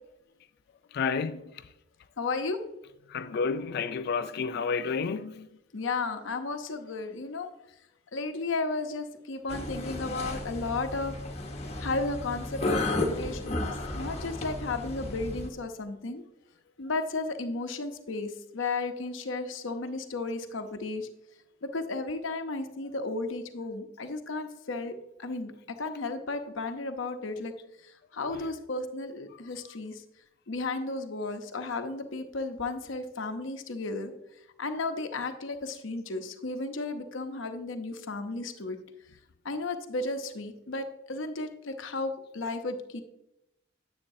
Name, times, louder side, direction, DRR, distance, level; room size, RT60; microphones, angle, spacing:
voice 1, 0.9-1.5 3.1-5.5, left 5 dB, 55° left, 0.4 m, -30 dB
voice 2, 2.2-2.6 5.7-7.5 8.1-11.1 11.8-16.2 16.8-21.1 21.6-24.9 25.2-25.5 25.8-27.5 28.1-29.9 30.5-34.1 34.6-38.8 39.4-43.0, left 3 dB, 80° left, 0.8 m, -34 dB
sound 1, 9.5-15.5, left 2 dB, 35° left, 1.1 m, -33 dB
9.9 x 8.1 x 2.7 m
head